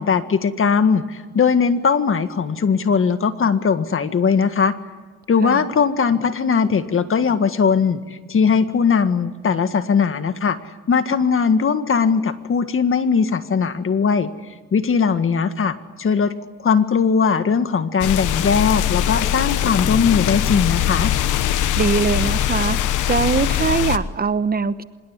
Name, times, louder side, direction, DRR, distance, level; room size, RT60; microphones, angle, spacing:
voice 1, 0.0-4.7 5.3-10.6 10.9-14.3 14.7-16.3 16.6-21.1, left 6 dB, 45° left, 10 dB, 1.8 m, -19 dB
sound 1, 18.0-24.0, left 11 dB, 85° left, 1.2 m, -21 dB
voice 2, 21.5-22.8 23.1-24.8, right 5 dB, 30° right, 13 dB, 1.0 m, -22 dB
25.5 x 21.5 x 9.7 m, 1.4 s
cardioid pair, 90°, 30 cm